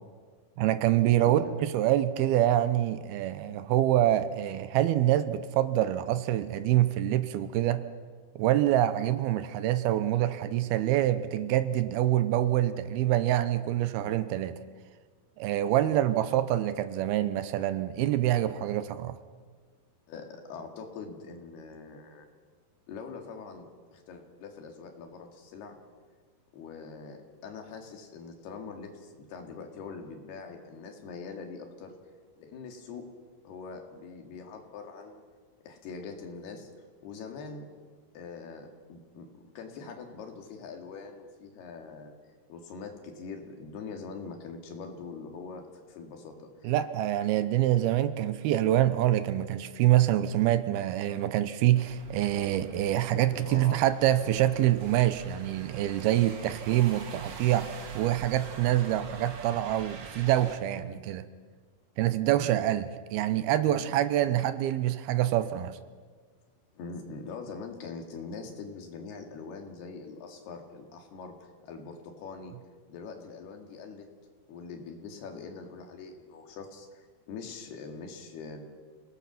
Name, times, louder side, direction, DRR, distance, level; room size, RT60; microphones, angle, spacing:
voice 1, 0.6-7.9 8.4-14.6 15.4-19.2 46.6-61.3 62.0-65.8, right 13 dB, 80° right, 12 dB, 2.7 m, -26 dB
voice 2, 1.2-1.6 14.0-14.2 20.1-22.3 22.9-25.8 26.5-27.2 27.4-31.9 32.4-33.1 33.4-35.2 35.6-36.7 37.0-37.7 38.1-39.3 39.6-42.1 42.5-46.7 53.3-53.8 60.8-61.0 62.4-62.6 63.7-64.0 66.8-71.4 71.6-72.5 72.9-74.1 74.5-78.7, left 5 dB, 80° left, 3 dB, 4.2 m, -43 dB
sound 1, 51.7-60.6, right 5 dB, 55° right, 1.2 m, -46 dB
28.0 x 18.0 x 6.1 m, 1.6 s
omnidirectional pair, 4.6 m